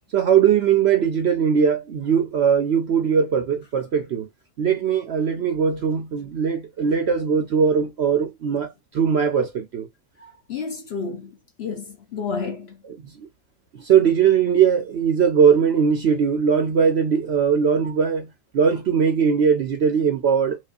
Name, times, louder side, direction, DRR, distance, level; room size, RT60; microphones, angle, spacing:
voice 1, 0.1-4.3 4.6-8.7 8.9-9.9 13.7-18.3 18.5-20.6, right 7 dB, 60° right, 0.7 m, -20 dB
voice 2, 10.2-12.8 17.8-17.9, left 5 dB, 55° left, 0.8 m, -31 dB
4.7 x 2.3 x 2.5 m
omnidirectional pair, 1.6 m